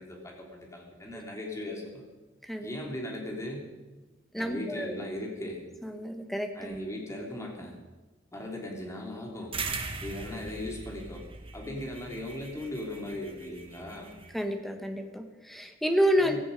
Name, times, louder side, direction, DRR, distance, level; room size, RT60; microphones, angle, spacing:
voice 1, 0.0-2.0 2.6-3.7 4.4-5.6 6.5-7.7 8.3-9.5 10.0-11.2 11.5-14.1 16.2-16.4, left 1 dB, 15° left, 0 dB, 3.2 m, -38 dB
voice 2, 4.3-4.9 5.8-6.8 14.3-16.4, equal, ahead, 6 dB, 1.4 m, -29 dB
sound 1, 9.5-14.4, right 4 dB, 30° right, 1.4 m, -40 dB
16.0 x 14.0 x 5.3 m, 1.2 s
head